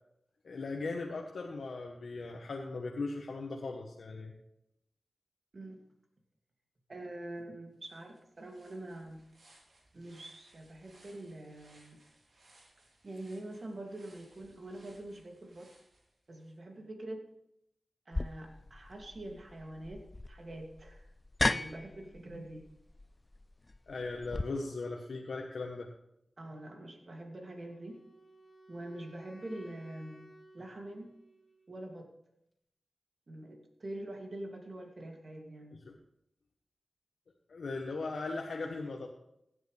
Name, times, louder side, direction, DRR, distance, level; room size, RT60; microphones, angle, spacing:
voice 1, 0.4-4.3 23.9-25.9 35.8-35.9 37.5-39.1, left 3 dB, 80° left, 0 dB, 1.1 m, -38 dB
voice 2, 6.9-9.2 9.9-12.0 13.0-15.7 16.3-17.2 18.1-21.1 21.4-22.7 26.4-28.0 28.7-31.1 31.7-32.1 33.3-35.8, right 1 dB, 55° right, 1 dB, 2.5 m, -45 dB
sound 1, 7.4-7.5 7.8-16.6, right 2 dB, 75° right, 3.5 m, -64 dB
sound 2, 18.1-24.4, left 2 dB, 35° left, 0.3 m, -37 dB
Wind instrument woodwind instrument, 27.7-31.8, right 1 dB, 55° left, 2.4 m, -57 dB
16.0 x 9.3 x 3.4 m, 0.80 s
cardioid pair, 45°, 0 cm